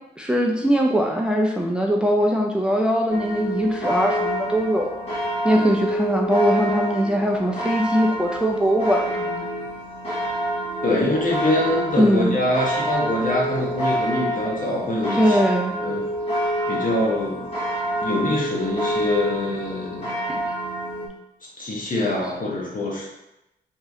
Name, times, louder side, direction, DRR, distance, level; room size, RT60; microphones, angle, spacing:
voice 1, 0.2-4.9 5.4-9.5 12.0-12.4 15.1-15.8 20.3-20.4, equal, 5° right, 0 dB, 0.4 m, -21 dB
sound 1, 3.1-21.1, equal, 35° left, 1.4 m, -27 dB
voice 2, 10.8-15.4 15.8-16.0 16.7-17.5 18.0-20.1 21.6-23.1, left 1 dB, 50° left, -3 dB, 1.2 m, -24 dB
3.0 x 2.8 x 3.6 m, 0.90 s
cardioid pair, 60°, 18 cm